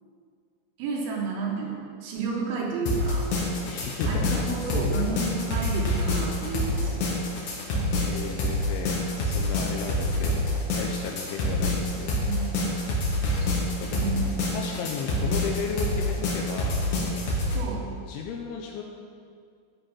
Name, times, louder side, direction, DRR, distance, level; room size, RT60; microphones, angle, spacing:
voice 1, 0.8-3.3 4.1-7.1 12.2-12.7 13.9-14.3 17.5-17.9, right 4 dB, 75° right, -1 dB, 3.7 m, -32 dB
sound 1, 2.9-17.6, left 1 dB, 65° left, 2.0 m, -27 dB
voice 2, 3.6-5.0 7.4-7.7 8.0-12.3 13.3-13.5 13.8-14.1 14.5-16.8 17.9-18.8, left 6 dB, 80° left, 0 dB, 2.8 m, -35 dB
13.5 x 5.0 x 5.7 m, 2.2 s
omnidirectional pair, 6.0 m